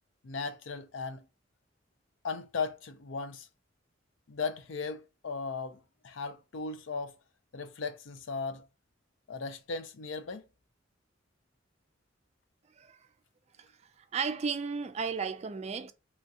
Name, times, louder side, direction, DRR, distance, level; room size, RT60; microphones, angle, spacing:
voice 1, 0.2-1.3 2.2-3.5 4.3-7.1 7.5-8.7 9.3-10.4, left 4 dB, 75° left, 0.5 m, -37 dB
voice 2, 14.1-15.9, right 5 dB, 35° right, 0.4 m, -33 dB
3.1 x 2.7 x 2.3 m
head